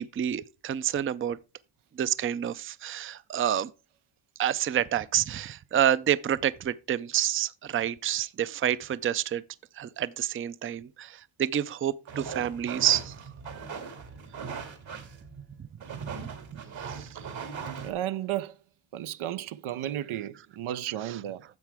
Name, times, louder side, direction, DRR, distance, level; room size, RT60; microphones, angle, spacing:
voice 1, 0.0-1.4 2.0-3.7 4.4-9.4 9.8-13.2 15.6-16.0 16.5-17.2, right 10 dB, 30° right, 0.4 m, -28 dB
sound 1, 12.1-17.9, right 6 dB, 70° right, 2.2 m, -39 dB
voice 2, 17.8-18.6 18.9-21.4, right 12 dB, 90° right, 0.7 m, -33 dB
10.5 x 7.4 x 3.4 m
wide cardioid pair, 115°, 47 cm